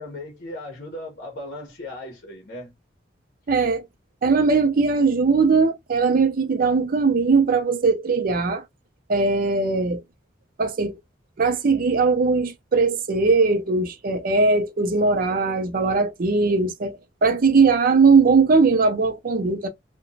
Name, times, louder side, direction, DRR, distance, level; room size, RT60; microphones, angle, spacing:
voice 1, 0.0-2.7, left 1 dB, 50° left, 0.8 m, -37 dB
voice 2, 3.5-3.8 4.2-8.6 9.1-10.0 10.6-11.0 11.4-19.7, right 4 dB, 50° right, 0.5 m, -20 dB
2.9 x 2.2 x 2.6 m
head